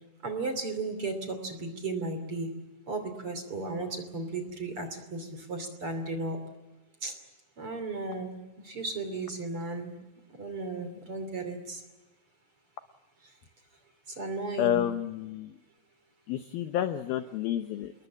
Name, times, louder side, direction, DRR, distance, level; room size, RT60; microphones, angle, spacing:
voice 1, 0.2-2.5 2.9-6.4 7.0-7.1 7.6-8.4 8.6-10.0 10.4-11.8 14.1-14.9, right 3 dB, 35° right, 7 dB, 3.1 m, -35 dB
voice 2, 14.6-15.5 16.3-17.9, left 11 dB, 80° left, 9 dB, 2.2 m, -29 dB
28.0 x 21.0 x 7.3 m, 1.1 s
omnidirectional pair, 5.4 m